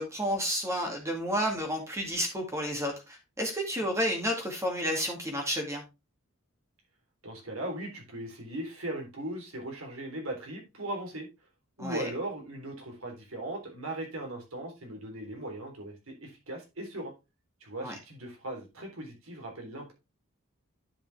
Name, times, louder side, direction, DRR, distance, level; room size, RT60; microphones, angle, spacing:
voice 1, 0.0-5.8 11.8-12.1 17.8-17.9, equal, 15° right, 2.1 m, -31 dB
voice 2, 7.2-11.3 11.8-17.1 17.6-19.9, right 1 dB, 85° right, 3.5 m, -38 dB
10.0 x 5.7 x 3.4 m
head